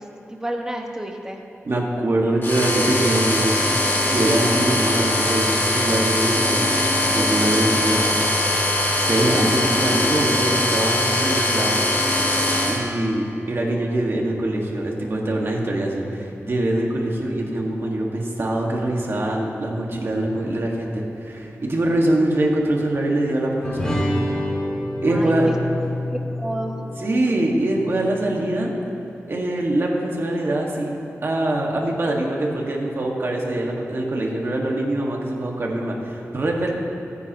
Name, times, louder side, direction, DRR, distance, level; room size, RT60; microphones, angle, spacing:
voice 1, 0.0-1.4 25.1-25.5 26.1-26.8, right 1 dB, 15° right, 1 dB, 1.4 m, -30 dB
voice 2, 1.6-3.7 4.1-6.8 7.1-8.2 8.9-11.8 12.7-24.0 25.0-25.5 27.0-28.7 29.3-36.7, right 1 dB, 50° right, -1 dB, 1.9 m, -23 dB
sound 1, 2.4-12.8, left 1 dB, 45° left, 2.2 m, -21 dB
sound 2, 23.6-28.3, left 1 dB, 15° left, 2.3 m, -28 dB
24.0 x 10.0 x 3.1 m, 3.0 s
wide cardioid pair, 130°, 5 cm